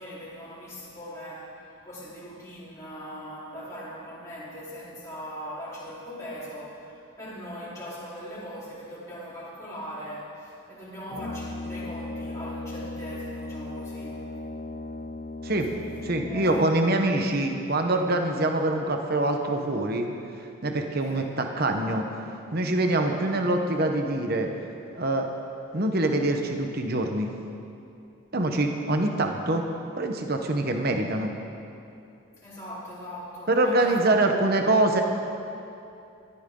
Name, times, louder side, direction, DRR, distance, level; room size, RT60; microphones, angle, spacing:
voice 1, 0.0-14.2 16.2-17.0 21.0-21.2 30.6-30.8 32.4-34.5, equal, 15° left, -10 dB, 4.1 m, -40 dB
Brass instrument, 11.1-16.9, left 2 dB, 40° left, 0.6 m, -37 dB
voice 2, 16.0-20.1 20.6-22.1 22.5-24.5 24.9-25.3 25.7-27.3 28.3-29.6 30.0-31.3 33.5-35.0, right 2 dB, 45° right, 4 dB, 1.1 m, -24 dB
20.0 x 14.0 x 3.9 m, 2.7 s
head